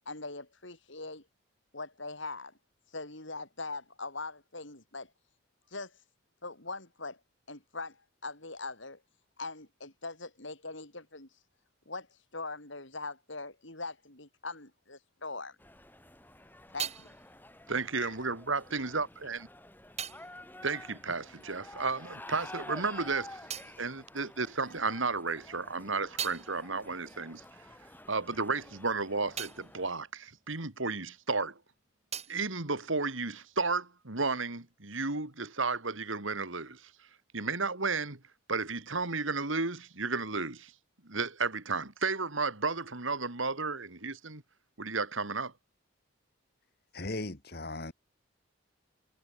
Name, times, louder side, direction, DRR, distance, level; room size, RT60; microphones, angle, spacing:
voice 1, 0.1-1.2 1.7-2.5 2.9-5.1 5.7-5.9 6.4-7.2 7.5-9.0 9.4-11.3 11.9-12.1 12.3-15.6 16.7-17.1 17.9-18.1, left 3 dB, 65° left, 6.3 m, -41 dB
sound 1, 15.6-29.9, left 1 dB, 10° left, 5.5 m, -50 dB
sound 2, 16.1-22.0 22.2-24.9 25.3-31.4 31.6-33.7, right 8 dB, 30° right, 2.4 m, -45 dB
voice 2, 17.7-19.5 20.6-23.4 23.8-27.4 28.1-31.6 32.3-36.9 37.3-38.2 38.5-40.7 41.0-44.4 44.8-45.5, right 4 dB, 75° right, 2.8 m, -33 dB
voice 3, 46.9-47.9, left 2 dB, 50° left, 1.7 m, -37 dB
head